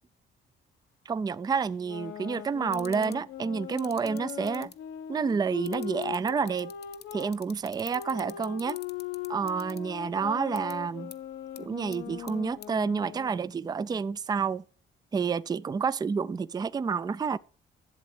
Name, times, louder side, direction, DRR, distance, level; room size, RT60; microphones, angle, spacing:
voice 1, 1.1-4.7 5.1-6.7 7.1-8.8 9.3-11.1 11.6-14.6 15.1-17.4, right 5 dB, 20° right, 0.4 m, -29 dB
sound 1, 1.7-7.3 7.9-13.5, left 10 dB, 85° left, 1.0 m, -40 dB
sound 2, 2.7-3.1 3.8-4.7 5.6-9.8 10.5-10.7 11.1-11.2 11.5-11.6 11.9-12.3 12.6-12.7, left 9 dB, 55° left, 0.8 m, -44 dB
11.5 x 7.6 x 4.9 m
cardioid pair, 90°, 20 cm